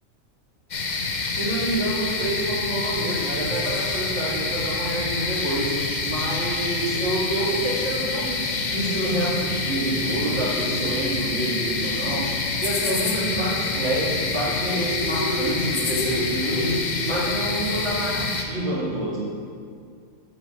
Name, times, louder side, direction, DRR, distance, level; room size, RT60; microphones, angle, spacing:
sound 1, 0.7-18.4, left 3 dB, 45° left, 0.6 m, -27 dB
voice 1, 1.3-5.7 6.0-12.2 12.6-16.7 17.0-19.2, right 1 dB, 50° right, -13 dB, 2.5 m, -27 dB
9.2 x 7.5 x 3.2 m, 2.3 s
omnidirectional pair, 1.4 m